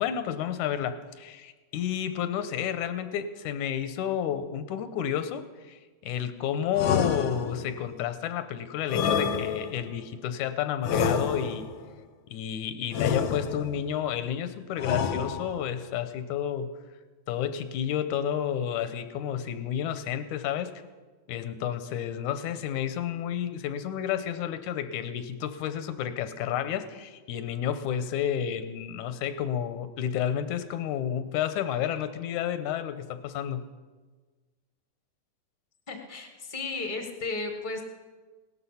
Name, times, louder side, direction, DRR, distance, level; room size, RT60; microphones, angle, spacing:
voice 1, 0.0-11.7 12.3-16.7 17.3-20.7 21.3-33.6, left 9 dB, 85° left, 10 dB, 2.3 m, -31 dB
sound 1, 6.8-7.8 8.9-9.9 10.8-11.8 12.9-13.8 14.8-15.7, left 6 dB, 70° left, 1.1 m, -28 dB
voice 2, 35.9-37.8, left 3 dB, 40° left, 4 dB, 0.6 m, -34 dB
17.5 x 12.5 x 5.7 m, 1.4 s
omnidirectional pair, 3.4 m